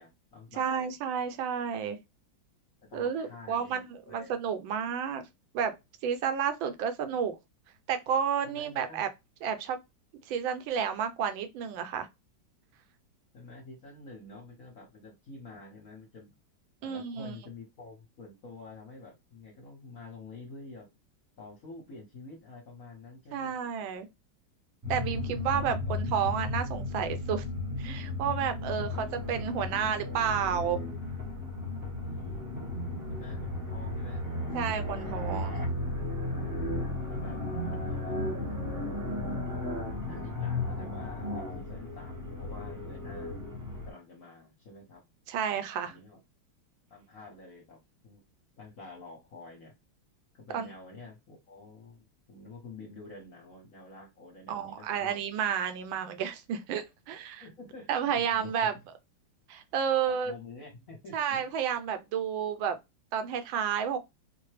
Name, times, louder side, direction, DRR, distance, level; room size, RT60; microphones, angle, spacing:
voice 1, 0.0-0.9 2.8-4.3 7.1-7.2 8.4-9.1 13.3-16.3 16.8-20.9 21.4-23.5 25.1-26.0 28.6-29.2 32.0-32.6 33.1-34.3 34.9-35.6 37.1-37.4 37.7-39.0 40.1-43.4 43.9-45.0 45.8-46.2 46.9-47.8 48.0-48.2 48.6-49.7 50.3-55.2 57.4-58.9 60.1-61.5, left 3 dB, 50° left, 1.2 m, -48 dB
voice 2, 0.6-2.0 2.9-5.2 5.5-5.7 6.0-7.4 7.9-9.1 9.4-9.8 10.3-12.1 16.8-17.3 23.3-24.1 24.9-27.4 27.8-30.8 34.5-35.7 45.3-45.9 50.5-50.7 54.5-57.4 57.9-58.7 59.5-60.3 61.1-62.8 63.1-64.0, right 8 dB, 80° right, 1.4 m, -31 dB
sound 1, 24.8-43.9, left 2 dB, 15° right, 0.8 m, -34 dB
4.6 x 2.2 x 3.2 m
omnidirectional pair, 2.2 m